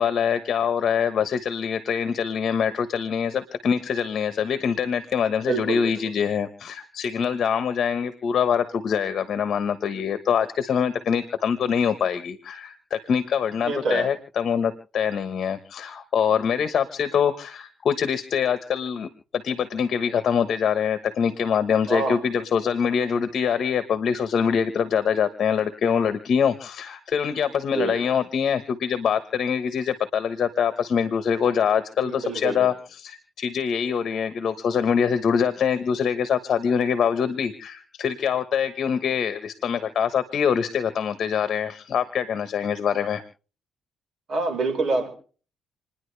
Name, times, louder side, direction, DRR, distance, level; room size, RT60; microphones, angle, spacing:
voice 1, 0.0-43.2, left 7 dB, 60° left, 11 dB, 1.3 m, -24 dB
voice 2, 5.5-6.0 13.6-14.1 21.9-22.2 27.7-28.0 32.0-32.7 44.3-45.1, right 3 dB, 50° right, 3 dB, 5.3 m, -26 dB
28.0 x 10.5 x 3.4 m, 0.40 s
cardioid pair, 90°, 0 cm